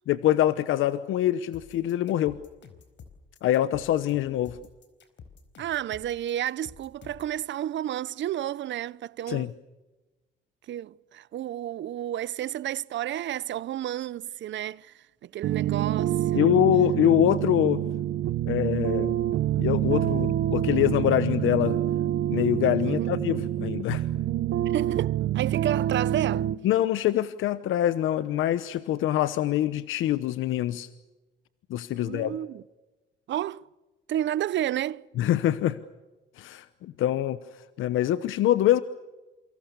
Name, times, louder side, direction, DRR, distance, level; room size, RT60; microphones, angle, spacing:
voice 1, 0.1-2.4 3.4-4.6 9.3-9.5 16.3-17.8 18.4-19.1 19.6-21.8 22.3-24.1 26.6-30.9 31.7-32.3 35.2-35.8 36.4-38.8, left 12 dB, 85° left, 1.0 m, -24 dB
sound 1, 1.5-7.3, left 6 dB, 70° left, 4.5 m, -50 dB
voice 2, 5.6-9.5 10.7-16.5 22.8-23.1 24.6-26.5 31.9-32.6 33.3-33.7 34.1-35.1, right 12 dB, 65° right, 0.7 m, -31 dB
sound 2, 15.4-26.6, right 12 dB, 85° right, 1.1 m, -27 dB
28.0 x 24.5 x 6.9 m
cardioid pair, 90°, 20 cm